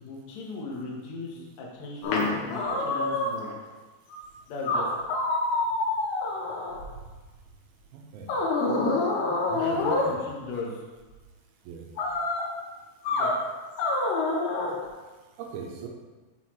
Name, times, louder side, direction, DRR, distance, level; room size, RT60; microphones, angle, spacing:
voice 1, 0.0-3.5 4.5-4.9 9.6-10.8 13.1-13.3, left 3 dB, 70° left, -3 dB, 1.7 m, -36 dB
sound 1, 2.0-3.5 4.1-4.2 4.7-7.1 8.3-10.1 12.0-12.5 13.1-13.4 13.8-14.7, left 2 dB, 85° left, 3.0 m, -27 dB
voice 2, 7.9-8.3 9.5-10.2 11.7-11.8 15.4-15.9, right 6 dB, 80° right, 1 dB, 2.6 m, -40 dB
6.1 x 5.7 x 3.0 m, 1.2 s
omnidirectional pair, 4.5 m